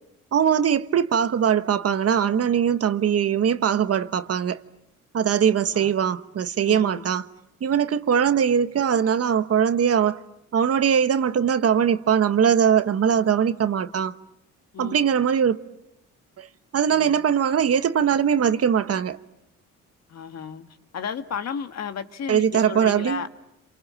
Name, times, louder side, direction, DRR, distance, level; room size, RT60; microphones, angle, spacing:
voice 1, 0.3-4.6 5.1-7.2 7.6-10.2 10.5-14.2 14.8-15.6 16.4-16.5 16.7-19.2 22.3-23.2, right 8 dB, 50° right, 1.2 m, -21 dB
voice 2, 6.7-7.1 14.7-15.1 16.9-17.1 20.1-20.6 20.9-23.3, left 7 dB, 60° left, 1.7 m, -33 dB
27.5 x 27.0 x 7.6 m
cardioid pair, 90°, 30 cm